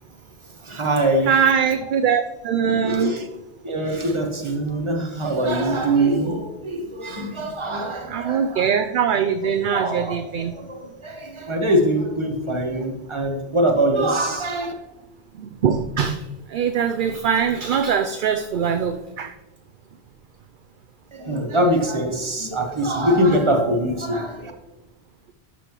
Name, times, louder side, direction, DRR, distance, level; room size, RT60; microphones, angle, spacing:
voice 1, 0.6-1.3 2.6-3.3 3.6-8.6 9.7-10.1 10.5-14.7 21.1-24.5, right 1 dB, 30° right, 2 dB, 1.1 m, -23 dB
voice 2, 1.3-3.1 8.1-10.5 15.3-16.2 16.5-19.3, right 7 dB, 60° right, 8 dB, 0.6 m, -22 dB
12.0 x 5.7 x 3.0 m, 1.1 s
omnidirectional pair, 1.1 m